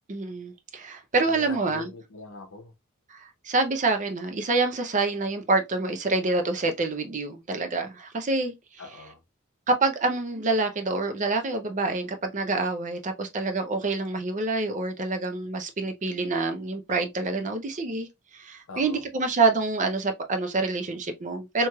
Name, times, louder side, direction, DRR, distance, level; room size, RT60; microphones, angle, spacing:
voice 1, 0.1-1.9 3.1-8.8 9.7-21.7, right 3 dB, 35° right, 0.5 m, -27 dB
voice 2, 1.3-2.7 8.8-9.2 18.7-19.0, left 3 dB, 65° left, 0.7 m, -41 dB
3.0 x 2.9 x 2.2 m
head